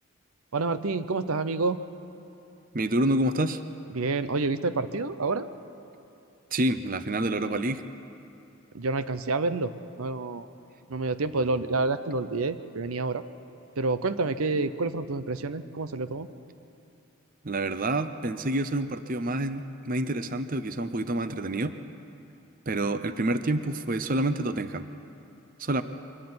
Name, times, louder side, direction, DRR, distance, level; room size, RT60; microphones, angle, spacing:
voice 1, 0.5-1.8 3.9-5.4 8.7-9.7 10.0-10.5 10.9-13.2 13.8-16.3, right 3 dB, 85° right, 12 dB, 0.8 m, -28 dB
voice 2, 2.7-3.6 6.5-7.8 17.4-21.7 22.7-24.8 25.6-25.8, right 1 dB, 40° right, 10 dB, 0.7 m, -28 dB
24.5 x 13.5 x 9.6 m, 2.7 s
head